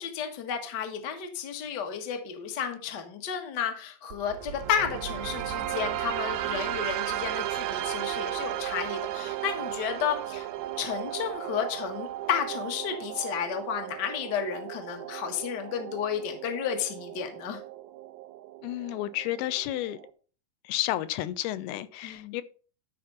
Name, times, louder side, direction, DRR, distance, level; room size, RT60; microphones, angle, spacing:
voice 1, 0.0-10.5 10.8-17.6 22.0-22.4, left 8 dB, 55° left, 1.2 m, -32 dB
sound 1, 4.1-20.1, right 13 dB, 85° right, 2.5 m, -35 dB
voice 2, 18.6-20.0 20.6-22.4, left 14 dB, 85° left, 2.6 m, -31 dB
12.0 x 5.2 x 5.5 m
omnidirectional pair, 4.5 m